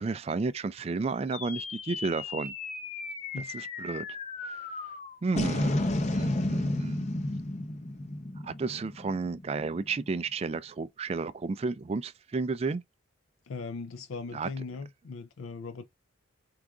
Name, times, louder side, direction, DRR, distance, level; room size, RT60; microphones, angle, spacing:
voice 1, 0.0-2.5 3.5-4.1 4.4-4.6 5.2-7.1 8.4-12.8 14.3-14.5, right 4 dB, 30° right, 0.3 m, -32 dB
sound 1, 1.3-9.9, left 2 dB, 35° left, 0.6 m, -33 dB
voice 2, 13.4-15.8, left 4 dB, 80° left, 0.4 m, -39 dB
4.7 x 2.4 x 3.4 m
head